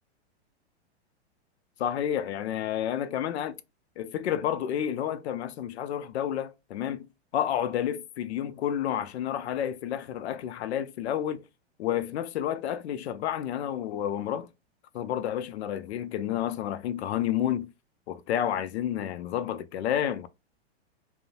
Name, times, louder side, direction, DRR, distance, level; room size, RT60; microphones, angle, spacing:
voice 1, 1.8-3.6 4.0-7.1 7.3-11.4 11.8-14.5 14.9-17.7 18.1-20.3, left 10 dB, 75° left, 0.5 m, -30 dB
2.6 x 2.0 x 2.7 m
hypercardioid pair, 145°, 33 cm